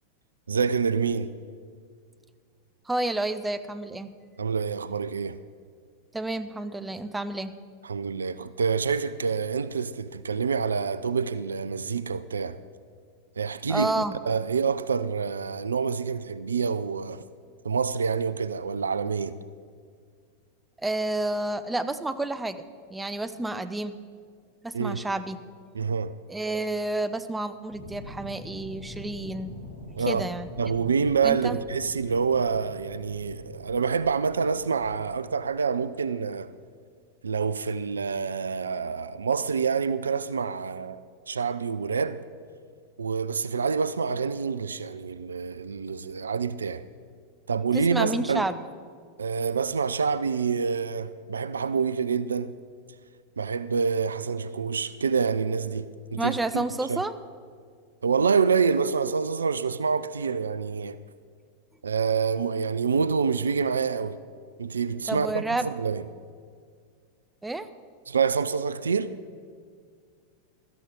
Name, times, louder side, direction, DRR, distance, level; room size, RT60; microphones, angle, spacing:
voice 1, 0.5-1.3 4.4-5.4 7.8-12.6 13.4-13.9 14.3-17.2 17.6-19.4 24.7-25.0 25.7-26.2 29.9-30.3 30.6-36.5 37.2-41.0 41.3-42.2 43.0-46.8 47.5-48.5 49.2-52.5 53.4-57.0 58.0-61.0 61.8-64.2 64.6-66.0 68.1-69.1, right 5 dB, 70° right, 0.4 m, -27 dB
voice 2, 2.9-4.1 6.1-7.6 13.7-14.2 20.8-22.6 22.9-24.0 24.6-25.4 26.3-29.6 30.1-30.5 31.2-31.6 47.7-48.5 56.2-57.1 65.1-65.7 67.4-67.7, right 2 dB, 10° right, 0.6 m, -30 dB
sound 1, 27.7-35.9 37.3-37.4, left 1 dB, 80° left, 3.4 m, -44 dB
16.5 x 13.0 x 3.9 m
figure-of-eight pair, 90°, 0 cm